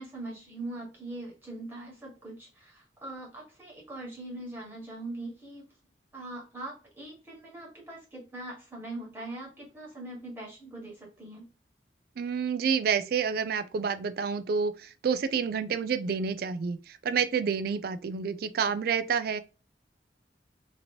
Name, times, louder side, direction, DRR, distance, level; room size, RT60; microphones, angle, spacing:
voice 1, 0.0-5.6 6.1-11.5, right 2 dB, 10° right, 1.5 m, -41 dB
voice 2, 12.2-19.4, right 6 dB, 55° right, 0.3 m, -29 dB
2.9 x 2.8 x 2.6 m
head